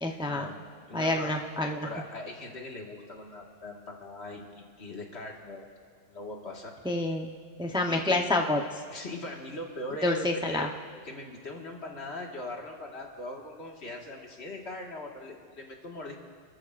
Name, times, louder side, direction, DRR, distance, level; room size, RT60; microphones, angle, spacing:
voice 1, 0.0-0.5 0.9-1.9 6.8-7.3 7.6-8.6 10.0-10.7, left 2 dB, 5° right, 2 dB, 0.7 m, -28 dB
voice 2, 0.9-1.3 1.8-5.7 6.1-6.7 7.9-8.2 8.9-10.7 11.0-16.2, left 1 dB, 80° left, 0 dB, 2.0 m, -40 dB
28.0 x 13.5 x 2.5 m, 2.2 s
omnidirectional pair, 1.1 m